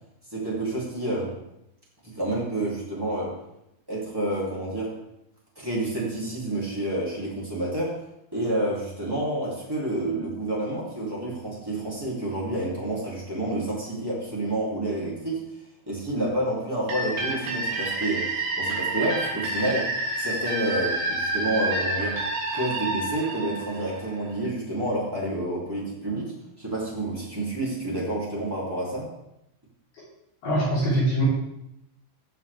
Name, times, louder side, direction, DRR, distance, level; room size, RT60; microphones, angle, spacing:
voice 1, 0.3-1.3 2.0-3.4 3.9-4.9 5.5-8.0 8.3-15.4 15.8-22.2 22.5-29.1, right 1 dB, 20° right, -6 dB, 0.6 m, -29 dB
sound 1, 16.9-24.5, right 2 dB, 60° right, 3.0 m, -29 dB
voice 2, 30.4-31.3, equal, 50° left, -10 dB, 4.9 m, -23 dB
17.5 x 6.7 x 3.5 m, 0.84 s
omnidirectional pair, 5.9 m